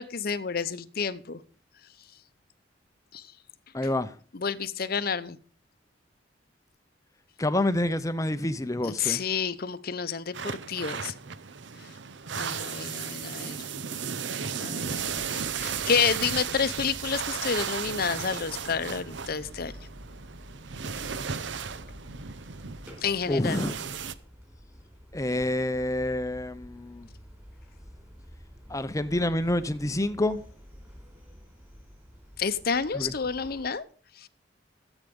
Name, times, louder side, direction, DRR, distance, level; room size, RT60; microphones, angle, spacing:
voice 1, 0.0-1.4 3.1-3.3 4.3-5.4 8.8-11.1 12.3-13.7 14.6-19.7 23.0-23.6 32.4-33.8 34.2-34.3, left 6 dB, 50° left, 0.7 m, -30 dB
voice 2, 3.7-4.1 7.4-9.2 23.3-23.8 25.1-27.1 28.7-30.4 32.9-33.1, left 1 dB, 15° left, 0.7 m, -28 dB
sound 1, 10.3-24.1, right 6 dB, 70° right, 0.7 m, -35 dB
sound 2, 14.8-33.7, equal, 10° right, 4.0 m, -49 dB
14.0 x 8.2 x 5.3 m
head